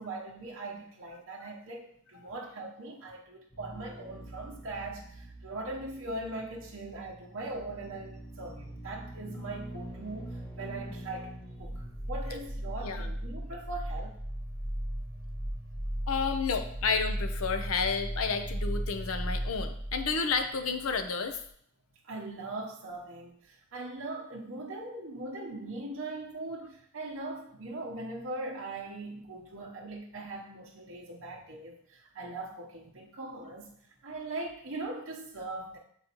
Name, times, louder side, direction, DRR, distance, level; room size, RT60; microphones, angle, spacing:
voice 1, 0.0-10.3 10.6-14.2 22.0-33.7 34.0-35.8, right 2 dB, 60° right, -2 dB, 0.8 m, -40 dB
sound 1, 3.5-21.0 21.3-21.4, equal, 15° left, 0.7 m, -38 dB
voice 2, 16.1-21.4, left 5 dB, 80° left, 7 dB, 0.7 m, -31 dB
8.0 x 4.0 x 2.9 m, 0.65 s
head